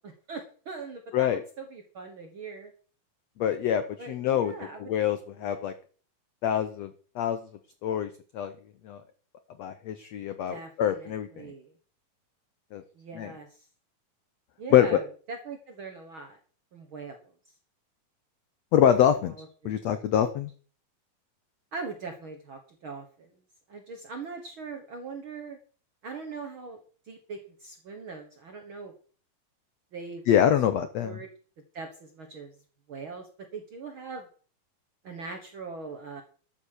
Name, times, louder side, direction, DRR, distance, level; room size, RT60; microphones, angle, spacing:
voice 1, 0.3-2.7 4.0-4.9 5.4-5.5 10.5-11.7 12.9-13.7 14.6-16.4 16.7-17.3 19.3-19.5 21.7-23.3 23.7-25.6 26.0-26.8 27.1-28.9 29.9-30.2 31.0-31.3 31.7-32.5 32.9-34.3 35.0-36.2, right 4 dB, 60° right, 3 dB, 1.4 m, -41 dB
voice 2, 3.4-4.5 4.8-5.7 6.4-7.4 7.8-8.5 8.8-9.0 9.6-11.5 12.7-12.8 13.1-13.3 14.7-15.0 18.7-19.4 19.6-20.5 30.3-31.2, left 10 dB, 85° left, 10 dB, 1.5 m, -25 dB
12.5 x 7.2 x 6.5 m, 0.42 s
omnidirectional pair, 4.1 m